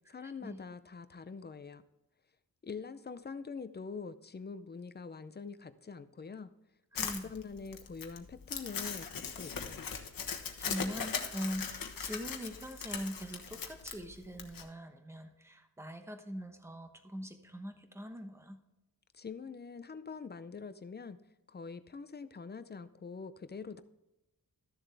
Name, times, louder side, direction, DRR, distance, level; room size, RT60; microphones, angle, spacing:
voice 1, 0.1-1.8 2.6-6.5 6.9-9.9 19.1-21.2 21.5-23.8, left 5 dB, 30° left, 12 dB, 0.5 m, -45 dB
Crumpling crinkling, 6.9-14.6, left 6 dB, 65° left, 1.2 m, -39 dB
voice 2, 6.9-7.3 10.6-18.6, equal, 5° right, 6 dB, 1.0 m, -42 dB
13.5 x 7.1 x 3.4 m, 0.94 s
wide cardioid pair, 150°, 36 cm